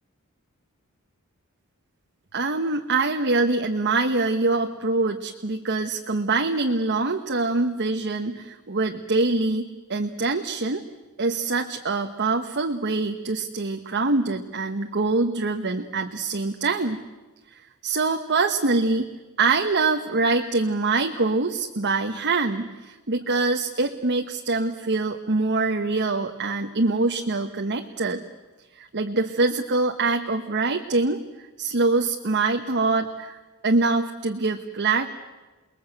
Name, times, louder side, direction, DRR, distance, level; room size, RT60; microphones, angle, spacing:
voice 1, 2.3-10.8 11.2-17.0 17.8-19.1 19.4-28.2 28.7-35.1, right 3 dB, 50° right, 4 dB, 1.2 m, -24 dB
29.0 x 21.0 x 8.1 m, 1.2 s
head